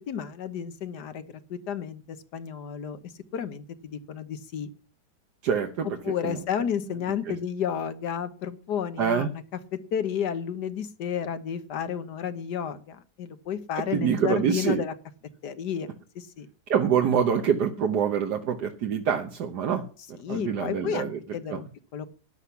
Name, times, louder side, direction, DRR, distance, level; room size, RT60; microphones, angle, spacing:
voice 1, 0.1-1.2 1.5-3.0 3.3-4.7 6.0-9.4 9.7-14.9 15.4-15.9 16.1-16.5 20.2-22.1, left 8 dB, 85° left, 11 dB, 1.7 m, -32 dB
voice 2, 5.4-5.9 6.2-6.4 7.3-7.4 9.0-9.3 13.9-14.8 16.7-19.9 20.3-21.2 21.5-21.6, right 7 dB, 80° right, 4 dB, 1.7 m, -25 dB
13.0 x 10.0 x 5.8 m, 0.39 s
omnidirectional pair, 1.7 m